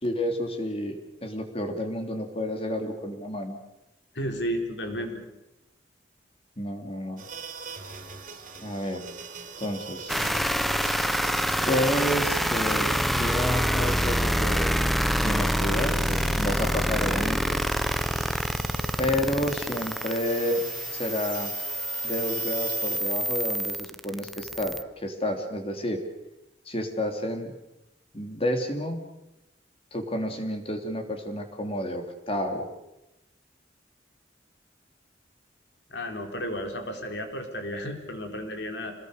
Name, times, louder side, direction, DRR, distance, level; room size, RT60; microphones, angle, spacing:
voice 1, 0.0-3.6 6.6-7.2 8.6-9.0 9.6-10.1 11.7-14.9 15.2-17.6 19.0-20.6 20.9-21.5 22.0-26.0 26.7-27.5 28.1-29.0 29.9-32.7, left 1 dB, 35° left, 5 dB, 3.2 m, -30 dB
voice 2, 4.1-5.2 35.9-38.9, equal, 70° left, 4 dB, 4.1 m, -33 dB
sound 1, 7.2-23.0, right 4 dB, 45° right, 3.3 m, -43 dB
sound 2, 10.1-24.8, equal, ahead, 0.8 m, -27 dB
27.0 x 20.5 x 6.6 m, 0.93 s
head